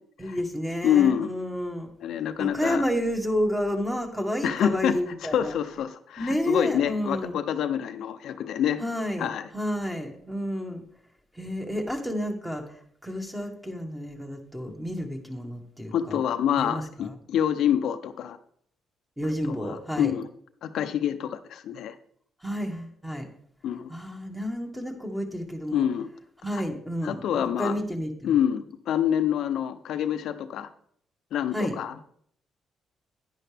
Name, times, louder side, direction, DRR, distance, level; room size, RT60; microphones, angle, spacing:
voice 1, 0.2-1.9 2.4-5.5 6.2-7.4 8.8-10.8 11.3-16.2 16.6-17.1 19.2-20.1 22.4-23.3 23.9-25.9 26.4-28.3 31.5-31.8, equal, 5° right, 3 dB, 1.8 m, -30 dB
voice 2, 0.8-1.3 2.0-2.8 4.4-5.0 5.3-8.8 9.2-9.5 15.9-18.4 19.5-20.3 20.6-22.0 23.6-23.9 25.7-26.1 26.5-26.6 27.0-27.8 28.2-30.7 31.3-32.1, left 9 dB, 75° left, 9 dB, 0.6 m, -26 dB
10.0 x 10.0 x 3.5 m, 0.65 s
cardioid pair, 90°, 0 cm